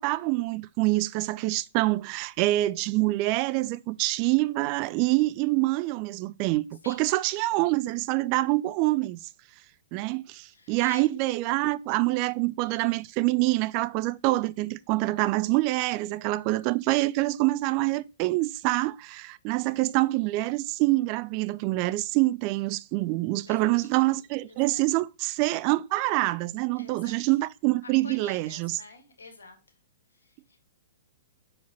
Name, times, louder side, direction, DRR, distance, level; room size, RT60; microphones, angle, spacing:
voice 1, 0.0-9.2 9.9-28.8, right 19 dB, 40° right, 0.4 m, -26 dB
voice 2, 10.5-11.1 23.4-24.2 24.5-24.8 26.8-27.2 27.8-29.6 30.1-30.7, left 3 dB, 75° left, 1.7 m, -49 dB
5.4 x 4.9 x 4.3 m
figure-of-eight pair, 110°, 0 cm